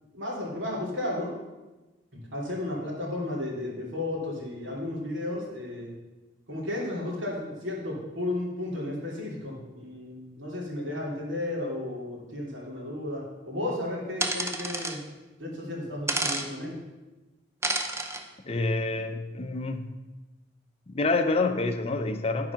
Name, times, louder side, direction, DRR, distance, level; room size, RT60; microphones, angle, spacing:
voice 1, 0.1-1.3 2.1-5.9 6.5-15.0 15.4-16.7, left 1 dB, 75° right, -4 dB, 3.0 m, -33 dB
sound 1, 14.2-15.0 16.1-16.5 17.6-18.2, right 2 dB, 15° right, 0.7 m, -29 dB
voice 2, 18.5-19.9 20.9-22.5, left 3 dB, 30° left, 7 dB, 0.6 m, -27 dB
11.5 x 4.8 x 5.8 m, 1.1 s
head